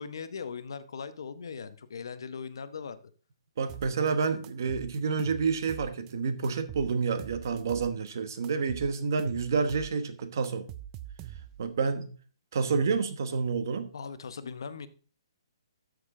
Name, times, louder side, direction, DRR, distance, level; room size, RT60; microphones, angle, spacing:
voice 1, 0.0-3.0 13.9-14.9, left 6 dB, 55° left, 0.9 m, -39 dB
voice 2, 3.6-10.7 11.6-12.1 12.5-13.9, right 5 dB, 40° right, 1.1 m, -29 dB
sound 1, 3.7-4.1 4.4-6.1 6.4-8.1 8.4-9.9 10.2-11.7, right 12 dB, 15° right, 0.3 m, -44 dB
12.5 x 6.5 x 3.7 m
hypercardioid pair, 175°, 3 cm